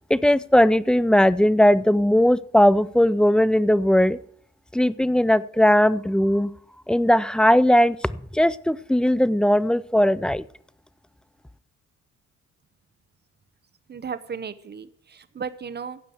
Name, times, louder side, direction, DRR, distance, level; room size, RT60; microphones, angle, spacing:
voice 1, 0.1-4.2 4.7-6.5 6.9-8.0 8.3-10.4, left 1 dB, 5° left, 18 dB, 0.4 m, -18 dB
voice 2, 13.9-16.0, right 6 dB, 35° right, 13 dB, 1.0 m, -35 dB
15.5 x 5.2 x 7.9 m, 0.65 s
cardioid pair, 90°, 30 cm